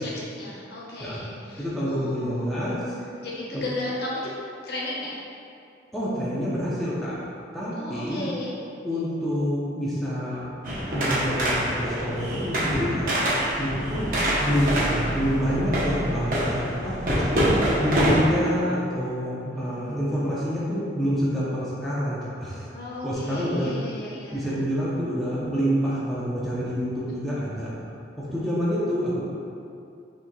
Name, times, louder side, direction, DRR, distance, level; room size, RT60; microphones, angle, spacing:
voice 1, 0.0-2.6 3.2-4.2 4.6-5.1 7.7-8.5 8.9-9.1 19.4-20.4 22.7-24.7 27.3-27.4 28.3-29.2, left 1 dB, 60° left, -6 dB, 0.8 m, -36 dB
voice 2, 1.6-2.7 3.5-3.6 5.9-8.2 8.8-10.4 10.9-13.1 13.6-14.1 14.4-16.9 17.8-22.7 23.0-23.7 24.3-27.7 28.2-29.2, equal, ahead, -9 dB, 0.6 m, -27 dB
sound 1, 10.6-18.3, equal, 45° right, 0.8 m, -25 dB
5.9 x 3.1 x 2.2 m, 2.5 s
head